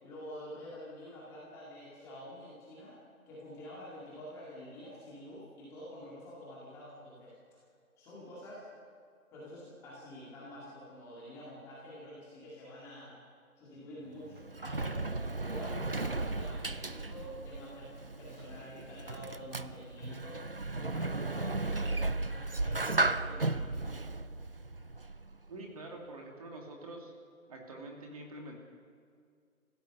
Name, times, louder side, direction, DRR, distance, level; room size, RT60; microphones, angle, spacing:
voice 1, 0.0-3.0 3.3-7.6 8.0-8.7 9.3-13.2 13.6-15.0 15.5-22.0 22.3-24.0, left 1 dB, 5° left, -7 dB, 2.1 m, -48 dB
Sliding door, 14.1-25.5, right 2 dB, 40° right, 0.5 m, -35 dB
voice 2, 25.5-27.1 27.5-28.5, right 2 dB, 25° right, 0 dB, 2.5 m, -46 dB
29.0 x 16.0 x 6.8 m, 2.2 s
figure-of-eight pair, 165°, 43 cm